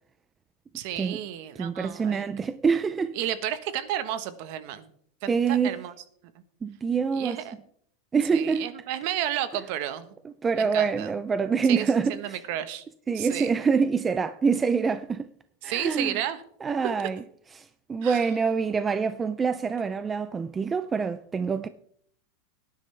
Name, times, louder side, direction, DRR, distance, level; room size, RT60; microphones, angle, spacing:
voice 1, 0.7-2.3 3.1-4.9 5.2-5.9 7.1-7.5 8.3-10.1 10.6-11.1 11.7-12.8 13.1-13.5 15.6-16.4 18.0-18.3, right 11 dB, 45° right, 1.2 m, -32 dB
voice 2, 1.6-3.2 5.3-5.8 6.6-7.4 8.1-8.7 10.2-12.4 13.1-15.3 15.6-16.2 16.6-17.2 17.6-21.7, right 5 dB, 15° right, 0.4 m, -26 dB
18.5 x 10.5 x 3.3 m
supercardioid pair, 165°, 0 cm